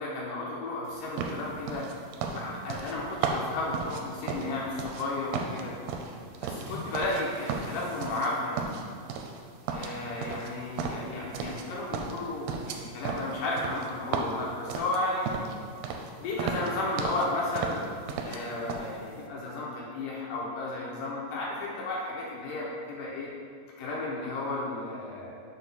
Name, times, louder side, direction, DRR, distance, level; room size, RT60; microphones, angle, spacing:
voice 1, 0.0-1.9 2.3-4.7 5.0-5.7 6.4-8.8 9.7-15.3 16.2-17.8 18.2-23.3 23.8-25.3, left 2 dB, 75° left, -4 dB, 2.0 m, -33 dB
sound 1, 1.2-5.1 5.3-7.2 7.5-8.3 8.6-9.4 9.7-11.7 11.9-15.6 15.8-16.1 16.4-17.3 17.6-18.4 18.7-18.9, right 5 dB, 90° right, 2.6 m, -34 dB
Water / Splash splatter, 6.5-8.8, equal, 50° right, 2.4 m, -47 dB
7.7 x 7.0 x 2.3 m, 2.3 s
omnidirectional pair, 4.5 m